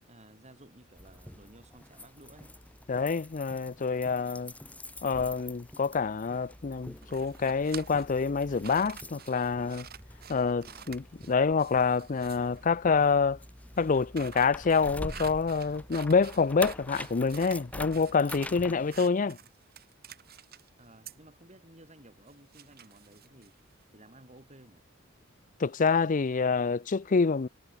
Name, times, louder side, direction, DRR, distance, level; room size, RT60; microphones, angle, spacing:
voice 1, 0.0-2.6 10.7-11.0 19.1-19.4 20.8-23.6 23.9-24.9, right 1 dB, 35° right, 5.4 m, -55 dB
sound 1, 1.0-19.1, left 1 dB, 5° left, 1.5 m, -46 dB
voice 2, 2.9-4.5 5.0-9.9 10.3-13.4 13.8-19.4 25.6-27.5, left 5 dB, 40° left, 0.5 m, -27 dB
sound 2, 7.0-12.6 13.8-17.6 17.9-18.5 18.9-20.7 21.1-21.2 22.3-23.8, right 8 dB, 50° right, 3.3 m, -48 dB
head